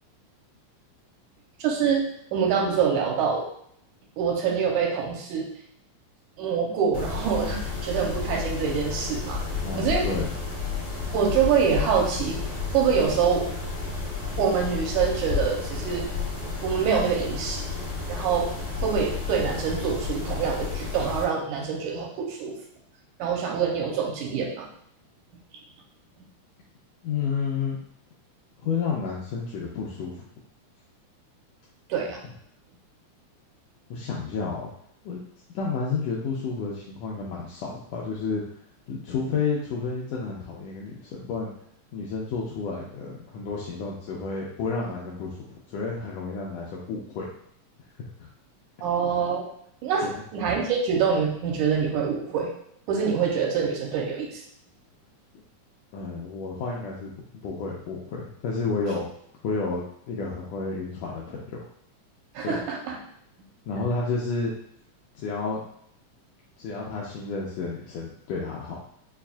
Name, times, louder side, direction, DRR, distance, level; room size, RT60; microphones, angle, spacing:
voice 1, 1.6-2.0 2.3-3.5 4.2-5.5 6.4-9.4 9.7-10.1 11.1-13.5 14.4-16.1 16.6-17.6 18.1-18.5 18.8-22.5 23.2-24.7 31.9-32.2 48.8-49.5 49.8-52.5 52.9-54.4 62.3-63.0, right 6 dB, 85° right, -1 dB, 2.1 m, -25 dB
Mechanisms, 6.9-21.2, left 4 dB, 50° left, 1.1 m, -31 dB
voice 2, 9.6-10.3 27.0-27.8 28.6-30.3 33.9-34.6 35.0-35.2 35.5-38.4 38.9-41.5 41.9-47.3 50.0-50.1 55.9-57.1 57.4-59.1 59.4-61.6 62.4-62.6 63.7-64.5 65.1-65.6 66.6-68.8, left 4 dB, 85° left, -4 dB, 1.4 m, -31 dB
5.6 x 2.4 x 2.3 m, 0.69 s
omnidirectional pair, 3.5 m